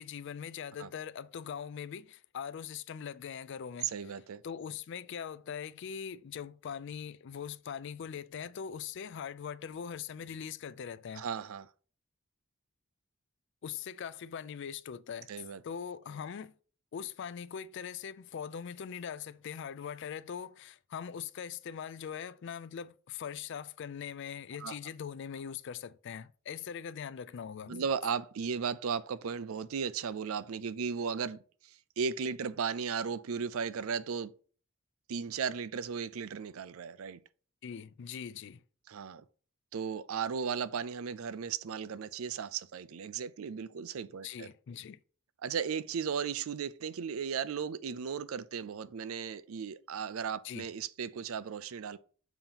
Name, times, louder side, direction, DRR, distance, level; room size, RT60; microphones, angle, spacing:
voice 1, 0.0-3.9 4.4-11.2 13.6-15.3 15.6-16.5 16.9-27.8 37.6-38.6 44.2-45.0 50.4-50.7, left 7 dB, 60° left, 0.4 m, -41 dB
voice 2, 3.8-4.4 11.2-11.7 15.3-15.6 24.6-24.8 27.7-34.3 35.1-37.2 38.9-39.2 39.7-44.5 45.4-52.0, right 6 dB, 85° right, 0.4 m, -36 dB
7.0 x 2.9 x 5.6 m
head